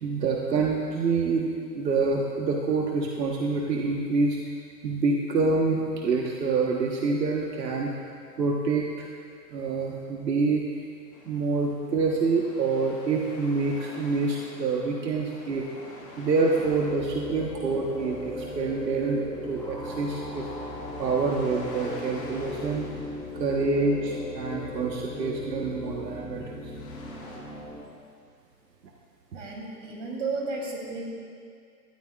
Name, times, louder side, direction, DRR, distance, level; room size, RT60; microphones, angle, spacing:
voice 1, 0.0-1.5 1.7-4.4 4.8-7.9 8.4-9.1 9.5-10.6 11.3-15.8 16.2-20.5 21.0-22.9 23.4-26.7, right 4 dB, 80° right, -1 dB, 1.5 m, -26 dB
sound 1, 11.1-27.4, left 2 dB, 20° left, 2.3 m, -47 dB
sound 2, 16.2-27.8, left 1 dB, ahead, 1.2 m, -38 dB
voice 2, 29.3-31.0, right 3 dB, 45° right, -3 dB, 3.3 m, -33 dB
19.0 x 13.5 x 2.5 m, 2.3 s
hypercardioid pair, 170°, 49 cm